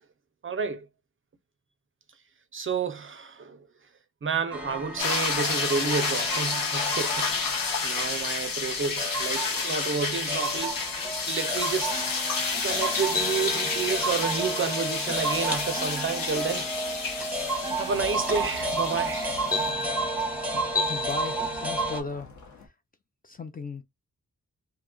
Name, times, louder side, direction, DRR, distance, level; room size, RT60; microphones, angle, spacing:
voice 1, 0.4-0.9 2.5-3.7 4.2-7.4 7.8-10.8 11.3-12.1 12.6-16.7 17.8-19.5 20.5-20.6, right 5 dB, 40° right, 0.4 m, -30 dB
sound 1, 4.5-22.0, right 1 dB, 5° right, 0.8 m, -31 dB
sound 2, 5.0-19.7, left 4 dB, 80° left, 0.9 m, -30 dB
sound 3, 10.4-22.7, left 3 dB, 60° left, 0.9 m, -48 dB
voice 2, 20.9-22.7 23.2-23.8, left 4 dB, 25° left, 0.4 m, -37 dB
2.7 x 2.2 x 3.6 m
wide cardioid pair, 155°, 33 cm